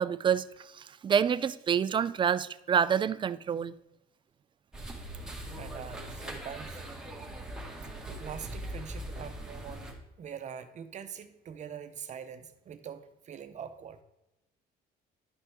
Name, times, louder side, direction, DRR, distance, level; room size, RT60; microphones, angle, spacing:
voice 1, 0.0-3.7, right 8 dB, 30° right, 0.4 m, -28 dB
sound 1, 4.7-9.9, right 1 dB, 5° right, 1.6 m, -41 dB
voice 2, 5.5-6.8 8.0-14.0, right 8 dB, 45° right, 0.8 m, -44 dB
10.5 x 5.8 x 3.5 m
cardioid pair, 110°, 17 cm